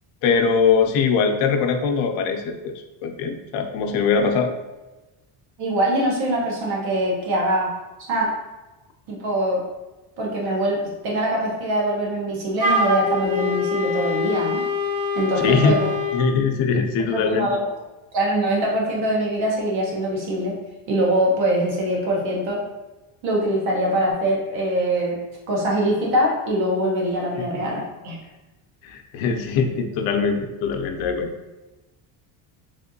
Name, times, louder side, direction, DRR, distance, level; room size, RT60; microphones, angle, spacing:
voice 1, 0.2-2.7 3.0-4.5 15.4-15.8 16.1-17.5 28.8-31.3, left 5 dB, 85° left, 5 dB, 0.6 m, -21 dB
voice 2, 5.6-7.7 8.0-8.3 9.1-9.6 10.2-14.6 15.1-15.9 17.1-17.7 18.1-20.5 20.9-22.6 23.2-25.2 25.5-28.2, right 1 dB, 75° right, -2 dB, 1.3 m, -23 dB
Wind instrument woodwind instrument, 12.6-16.2, left 3 dB, 10° left, 1.1 m, -24 dB
3.5 x 3.4 x 2.6 m, 1.1 s
cardioid pair, 175°, 46 cm